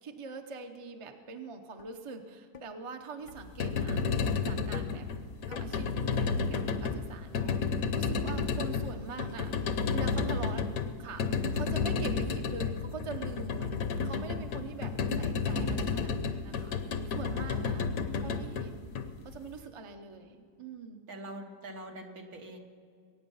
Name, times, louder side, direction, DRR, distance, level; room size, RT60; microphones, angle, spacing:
voice 1, 0.0-4.1 4.4-5.0 5.5-5.9 6.1-9.5 9.9-10.7 11.0-16.8 17.1-17.9 18.2-19.0 19.2-21.0, right 4 dB, 30° right, 5 dB, 0.6 m, -44 dB
sound 1, 1.2-1.3 1.8-1.9 2.5-2.7 3.3-3.4 4.0-4.1 4.7-5.0 5.5-5.7, left 6 dB, 80° left, 0.4 m, -45 dB
sound 2, 3.4-19.6, left 5 dB, 65° left, 1.2 m, -32 dB
voice 2, 4.6-5.0 17.3-17.9 21.1-22.6, equal, 70° right, 3 dB, 1.9 m, -44 dB
22.0 x 9.2 x 5.5 m, 2.2 s
omnidirectional pair, 1.7 m